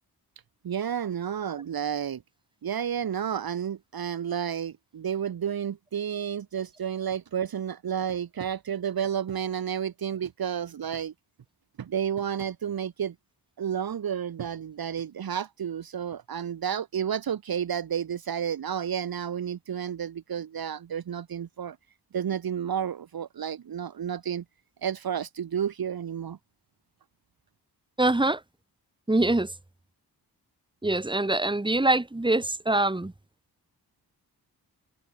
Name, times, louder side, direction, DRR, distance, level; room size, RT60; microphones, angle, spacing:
voice 1, 0.6-2.2 2.6-11.1 11.8-13.1 13.6-21.8 22.1-24.4 24.8-26.4, right 8 dB, 65° right, 1.2 m, -31 dB
voice 2, 28.0-28.4 29.1-29.5 30.8-33.1, right 2 dB, 10° right, 2.2 m, -24 dB
wide cardioid pair, 125°, 40 cm